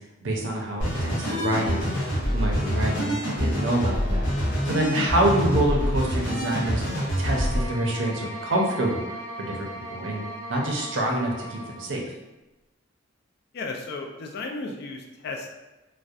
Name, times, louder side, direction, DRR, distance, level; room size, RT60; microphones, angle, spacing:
voice 1, 0.2-2.0 2.3-4.3 4.6-6.8 7.2-9.0 9.4-10.2 10.5-12.0, right 1 dB, 70° right, 0 dB, 0.5 m, -26 dB
sound 1, 0.8-7.7, equal, 70° left, 0.9 m, -26 dB
sound 2, 7.1-11.9, right 1 dB, 15° right, 0.6 m, -38 dB
voice 2, 13.5-15.5, left 3 dB, 55° left, 2 dB, 0.3 m, -34 dB
2.6 x 2.0 x 2.3 m, 1.0 s
head